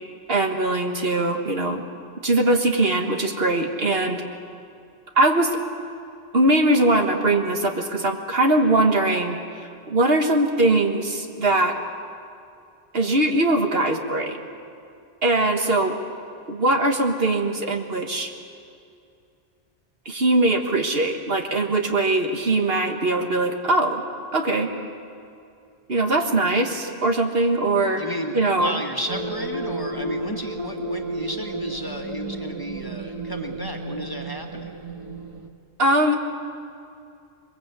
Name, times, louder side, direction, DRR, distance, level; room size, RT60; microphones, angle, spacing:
voice 1, 0.3-1.8 2.2-4.2 5.1-5.6 6.3-11.8 12.9-14.4 15.2-16.0 16.5-18.3 20.0-24.0 24.3-24.7 25.9-28.0 28.3-28.7 35.8-36.2, right 2 dB, 65° right, 3 dB, 1.8 m, -21 dB
voice 2, 28.0-34.7, equal, 20° left, 2 dB, 1.8 m, -32 dB
sound 1, 29.1-35.5, right 2 dB, 30° right, 1.4 m, -32 dB
23.0 x 21.5 x 8.3 m, 2.4 s
omnidirectional pair, 1.1 m